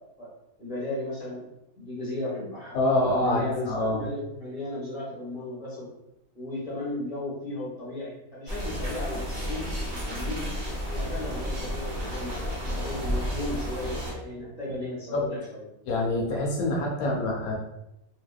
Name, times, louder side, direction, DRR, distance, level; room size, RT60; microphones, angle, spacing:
voice 1, 0.6-1.4 1.8-2.8 3.2-5.9 6.3-10.5 10.9-15.6, left 1 dB, 5° right, -7 dB, 0.5 m, -35 dB
voice 2, 2.7-4.0 15.1-15.2 15.9-17.5, left 1 dB, 75° left, -1 dB, 1.1 m, -26 dB
sound 1, 8.5-14.1, equal, 65° right, 0.3 m, -32 dB
2.7 x 2.2 x 2.2 m, 0.88 s
omnidirectional pair, 1.6 m